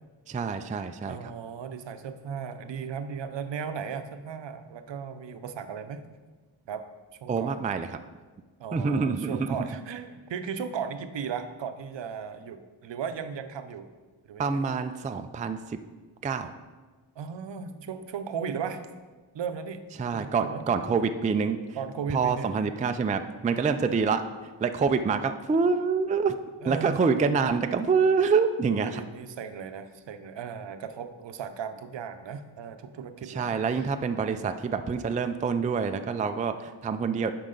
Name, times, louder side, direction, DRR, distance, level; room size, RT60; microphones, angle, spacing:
voice 1, 0.3-1.3 7.3-7.9 8.7-9.5 14.4-15.8 16.2-16.5 20.0-21.6 22.1-26.4 26.7-29.0 33.3-37.3, right 5 dB, 20° right, 8 dB, 0.3 m, -26 dB
voice 2, 1.1-6.1 6.7-6.9 7.2-7.5 8.6-13.9 14.3-14.6 17.2-18.8 19.3-19.8 20.1-20.6 21.7-22.7 26.6-27.5 28.8-33.9 34.2-34.7, right 6 dB, 65° right, 9 dB, 0.7 m, -36 dB
10.5 x 4.7 x 3.9 m, 1.3 s
cardioid pair, 80°, 47 cm